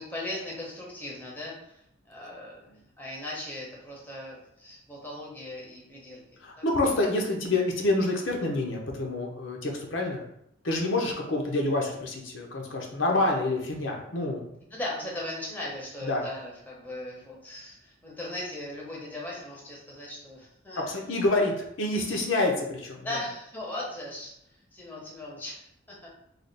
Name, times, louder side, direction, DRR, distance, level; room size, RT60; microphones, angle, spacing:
voice 1, 0.0-1.8 2.1-2.7 3.0-6.2 6.6-6.7 14.7-20.9 23.0-24.3 24.7-26.1, left 1 dB, 10° left, -4 dB, 0.8 m, -38 dB
voice 2, 6.4-10.2 10.6-14.5 16.0-16.2 20.7-23.2, left 2 dB, 75° left, 0 dB, 0.7 m, -27 dB
3.3 x 2.4 x 3.9 m, 0.76 s
head